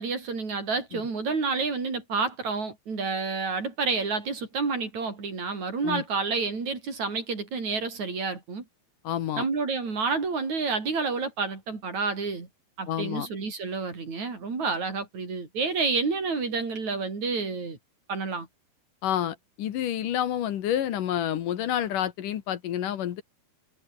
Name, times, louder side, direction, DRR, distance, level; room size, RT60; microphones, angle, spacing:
voice 1, 0.0-8.6 9.4-12.5 12.8-17.8 18.1-18.5, right 4 dB, 55° right, 6.5 m, -29 dB
voice 2, 9.0-9.5 12.9-13.3 19.0-23.2, left 11 dB, 70° left, 3.0 m, -29 dB
omnidirectional pair, 3.9 m